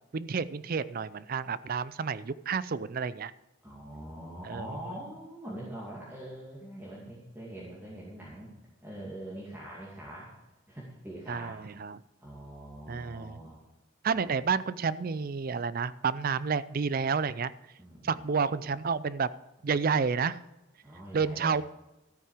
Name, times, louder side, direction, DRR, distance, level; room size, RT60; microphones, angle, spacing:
voice 1, 0.1-3.3 4.4-4.7 11.3-12.0 12.9-13.4 14.0-17.5 18.0-19.3 19.6-20.4 21.1-21.6, right 5 dB, 45° right, 17 dB, 0.4 m, -30 dB
voice 2, 3.6-8.5 8.8-10.3 10.7-11.6 12.2-13.6 14.1-14.2 17.8-18.2 20.8-21.5, right 1 dB, 10° right, -6 dB, 2.5 m, -43 dB
13.5 x 9.2 x 5.0 m, 1.0 s
head